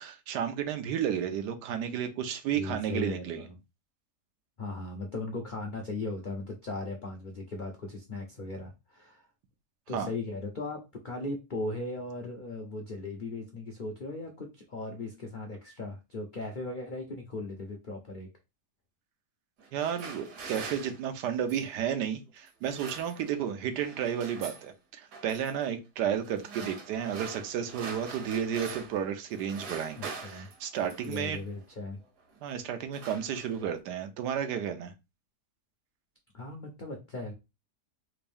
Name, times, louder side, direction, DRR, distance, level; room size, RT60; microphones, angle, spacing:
voice 1, 0.0-3.4 9.9-10.1 19.7-31.4 32.4-34.9, right 9 dB, 90° right, 1.3 m, -32 dB
voice 2, 2.6-3.5 4.6-9.3 9.9-10.8 11.0-18.3 29.9-30.5 31.1-32.0 36.3-37.3, left 2 dB, 75° left, 0.4 m, -38 dB
sound 1, 19.6-21.8 22.5-23.5 23.8-24.7 25.1-25.5 26.2-29.0 29.3-31.4 32.2-32.4 32.7-33.8, right 4 dB, 75° right, 1.4 m, -44 dB
3.5 x 2.6 x 3.4 m
omnidirectional pair, 1.8 m